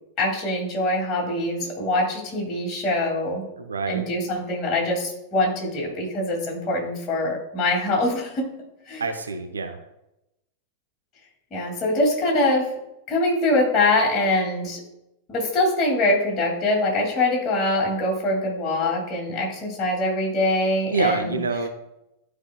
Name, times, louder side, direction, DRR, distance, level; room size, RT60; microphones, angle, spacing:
voice 1, 0.2-3.4 3.9-8.5 8.9-9.0 11.5-12.7 13.1-14.8 15.3-21.4, left 2 dB, 30° left, -2 dB, 2.3 m, -23 dB
voice 2, 3.6-4.1 9.0-9.8 20.9-21.7, right 3 dB, 75° right, 6 dB, 0.7 m, -26 dB
12.5 x 4.7 x 2.3 m, 0.87 s
figure-of-eight pair, 90°, 0 cm